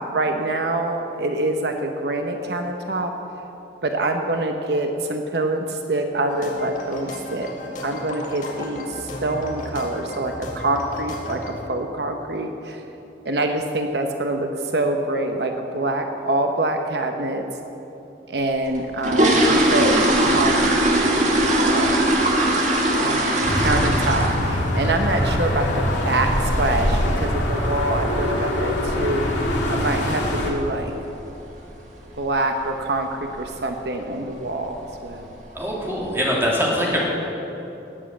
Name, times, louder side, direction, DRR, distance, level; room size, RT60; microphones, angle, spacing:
voice 1, 0.0-3.1 3.8-7.5 7.8-12.8 13.2-17.4 18.3-21.0 21.6-22.1 22.9-30.9 32.2-34.8 35.0-35.3, right 2 dB, 65° right, 4 dB, 0.9 m, -25 dB
sound 1, 6.3-11.5, left 1 dB, 40° left, 1.9 m, -35 dB
sound 2, 18.7-24.6 24.8-25.1 25.5-25.6 25.9-26.1 26.5-26.7 26.9-27.0 27.6-27.7 28.0-28.1 28.7-29.0 29.2-29.3 29.7-30.0 30.3-30.4 30.8-30.9 31.5-31.8 32.2-32.5 32.8-32.9 33.4-33.5 34.2-34.4 34.8-35.3 35.7-35.8, right 1 dB, 40° right, 1.9 m, -20 dB
sound 3, 23.4-30.5, left 1 dB, 80° left, 2.7 m, -23 dB
voice 2, 35.5-37.0, equal, 15° right, -4 dB, 2.8 m, -22 dB
18.5 x 7.6 x 7.5 m, 3.0 s
head